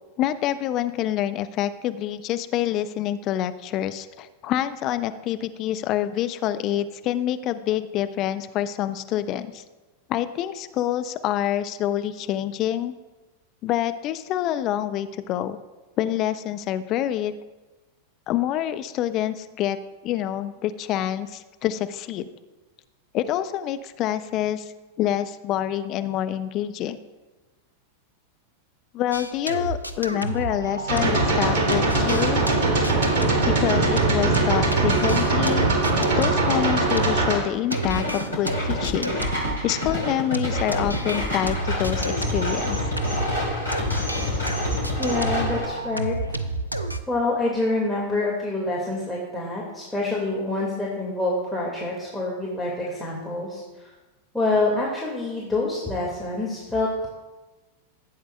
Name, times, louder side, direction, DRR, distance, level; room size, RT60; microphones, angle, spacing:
voice 1, 0.2-9.6 10.1-12.9 13.6-15.6 16.0-17.4 18.3-19.8 20.0-22.3 23.1-24.7 25.0-27.0 28.9-32.4 33.4-35.7 36.2-39.2 39.6-43.0, left 11 dB, 35° left, 11 dB, 0.4 m, -26 dB
sound 1, 29.1-31.4 31.7-43.4 43.7-47.0, right 2 dB, 90° right, 0.5 m, -30 dB
sound 2, 30.9-37.4, right 2 dB, 50° right, 2.1 m, -21 dB
sound 3, 37.7-45.6, left 1 dB, 75° left, 3.1 m, -28 dB
voice 2, 45.0-46.4 47.1-53.9 54.3-57.1, left 2 dB, ahead, -6 dB, 1.8 m, -26 dB
15.0 x 7.9 x 2.2 m, 1.2 s
figure-of-eight pair, 90°, 0 cm